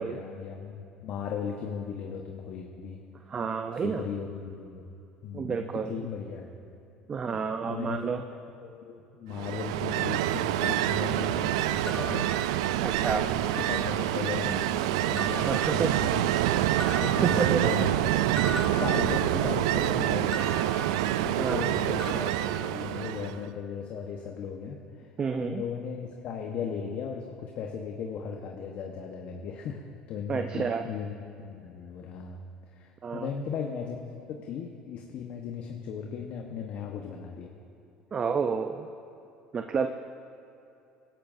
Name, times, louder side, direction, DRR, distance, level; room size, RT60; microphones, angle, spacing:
voice 1, 0.0-3.0 3.8-4.8 5.2-6.8 7.7-8.0 8.6-12.3 13.0-16.2 17.0-18.0 18.6-20.5 21.2-25.1 25.4-29.8 30.1-32.4 32.7-37.5, left 6 dB, 60° left, 2 dB, 1.2 m, -37 dB
voice 2, 3.3-4.0 5.3-5.9 7.1-8.2 12.8-13.3 15.4-16.2 17.2-17.6 21.4-21.8 25.2-25.6 30.3-30.8 33.0-33.3 38.1-38.9 39.5-39.9, right 6 dB, 35° right, 6 dB, 0.7 m, -30 dB
Ocean, 9.3-23.4, right 13 dB, 80° right, 0.4 m, -27 dB
sound 1, 11.9-13.1 13.5-14.3 15.2-16.4 16.8-19.7 20.3-21.7 22.0-23.3, equal, 15° left, 1.2 m, -41 dB
23.5 x 12.0 x 2.7 m, 2.8 s
hypercardioid pair, 80°, 3 cm